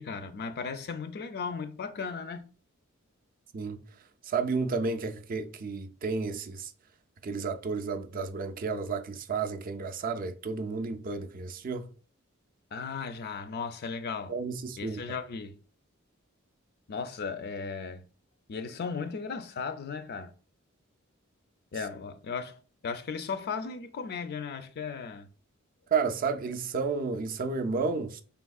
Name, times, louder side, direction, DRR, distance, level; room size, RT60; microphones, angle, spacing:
voice 1, 0.0-2.5 12.7-14.3 14.8-15.6 16.9-18.1 18.5-20.3 21.7-25.3, left 5 dB, 50° left, 0.4 m, -36 dB
voice 2, 4.2-6.7 7.2-11.9 14.3-15.0 25.9-28.2, right 4 dB, 40° right, 0.4 m, -32 dB
4.8 x 3.5 x 2.3 m
head